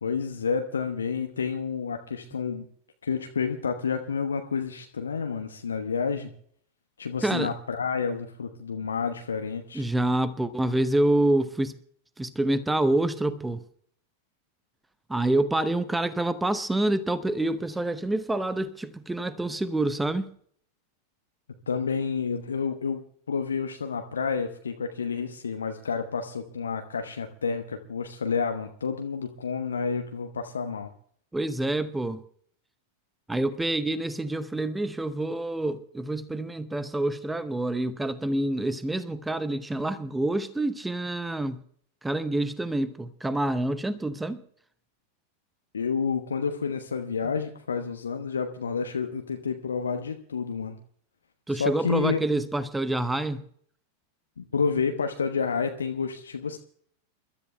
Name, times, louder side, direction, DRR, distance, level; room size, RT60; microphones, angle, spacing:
voice 1, 0.0-2.7 3.0-6.3 7.0-9.8 21.7-23.0 23.3-30.9 45.7-50.8 51.5-52.2 54.4-56.6, left 5 dB, 70° left, 1.0 m, -29 dB
voice 2, 7.2-7.5 9.7-11.7 12.2-13.6 15.1-20.3 31.3-32.2 33.3-41.6 42.0-44.4 51.5-53.4, right 1 dB, 5° right, 0.8 m, -27 dB
29.5 x 13.0 x 2.2 m
figure-of-eight pair, 90°, 0 cm